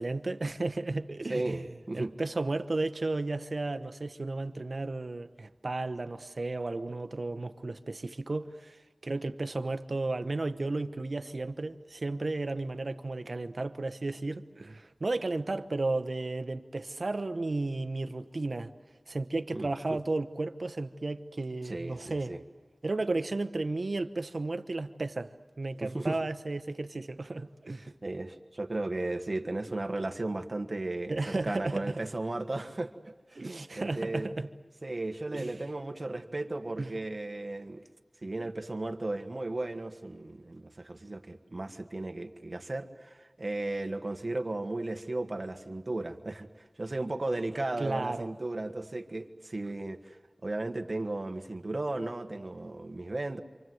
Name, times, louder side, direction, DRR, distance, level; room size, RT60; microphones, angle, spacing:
voice 1, 0.0-1.6 1.9-18.7 19.1-22.4 22.8-27.9 31.1-32.0 33.3-34.5 35.3-35.5 36.8-36.9 47.8-48.3, right 2 dB, 70° right, 1.1 m, -33 dB
voice 2, 1.3-2.1 19.5-20.0 21.6-22.4 25.8-26.2 28.0-33.4 33.8-34.3 34.8-37.8 38.2-46.5 46.8-50.2 50.4-53.4, right 2 dB, 50° right, 1.6 m, -35 dB
28.0 x 26.0 x 7.9 m
wide cardioid pair, 60°, 0 cm